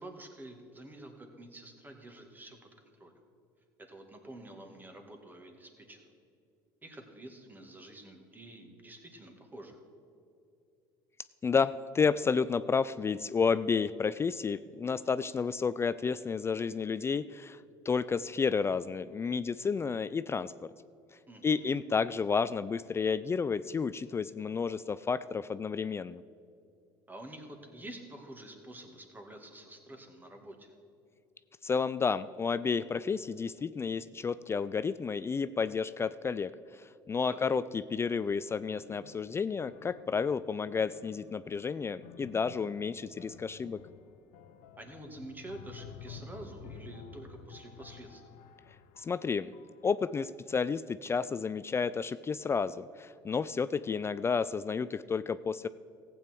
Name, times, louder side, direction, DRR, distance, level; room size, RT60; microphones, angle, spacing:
voice 1, 0.0-2.6 3.0-3.1 3.9-6.0 6.8-9.8 21.3-21.8 27.1-30.7 37.3-37.6 44.8-48.2, right 1 dB, 20° right, 4 dB, 2.1 m, -48 dB
voice 2, 11.4-17.6 17.9-20.7 21.4-26.2 31.6-43.8 49.0-49.5 49.8-55.7, left 5 dB, 25° left, 15 dB, 0.3 m, -31 dB
sound 1, 38.7-50.2, left 6 dB, 75° left, 0.8 m, -52 dB
15.0 x 8.7 x 4.6 m, 2.6 s
hypercardioid pair, 75°, 10 cm